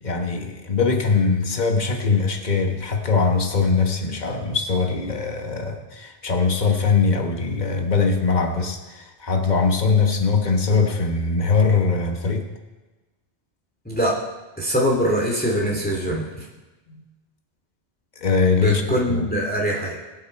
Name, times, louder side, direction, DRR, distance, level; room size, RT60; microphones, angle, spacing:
voice 1, 0.0-12.5 16.9-17.0 18.2-19.3, left 4 dB, 40° left, 4 dB, 1.5 m, -21 dB
voice 2, 14.6-16.2 18.5-20.0, equal, 10° left, -2 dB, 2.5 m, -22 dB
23.0 x 8.0 x 4.6 m, 1.2 s
omnidirectional pair, 1.1 m